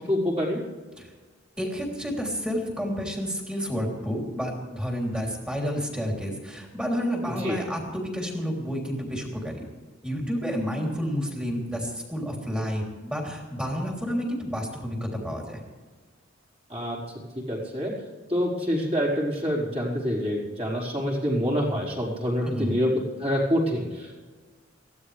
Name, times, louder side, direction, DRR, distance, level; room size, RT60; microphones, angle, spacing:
voice 1, 0.1-0.6 7.4-7.6 16.7-17.0 17.3-17.9 18.3-22.9 23.2-24.2, equal, 30° right, -5 dB, 4.7 m, -26 dB
voice 2, 1.6-9.6 10.0-15.6 22.4-22.8, equal, 5° right, -1 dB, 3.3 m, -30 dB
22.0 x 16.0 x 3.4 m, 1.3 s
head